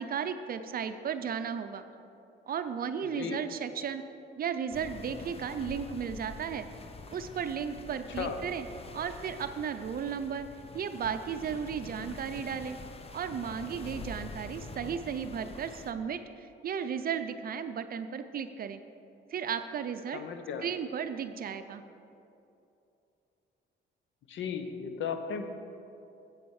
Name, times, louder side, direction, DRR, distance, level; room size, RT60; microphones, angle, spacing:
voice 1, 0.0-1.8 2.5-4.0 4.4-6.7 7.1-8.7 8.9-10.5 10.7-12.8 13.1-18.8 19.3-20.2 20.6-21.8, right 7 dB, 50° right, 10 dB, 0.5 m, -35 dB
voice 2, 3.0-3.4 8.2-8.4 20.1-20.7 24.3-25.5, left 6 dB, 70° left, 7 dB, 0.8 m, -35 dB
sound 1, 4.7-15.9, left 3 dB, 30° left, 0.6 m, -45 dB
8.0 x 7.1 x 4.7 m, 2.7 s
cardioid pair, 90°, 20 cm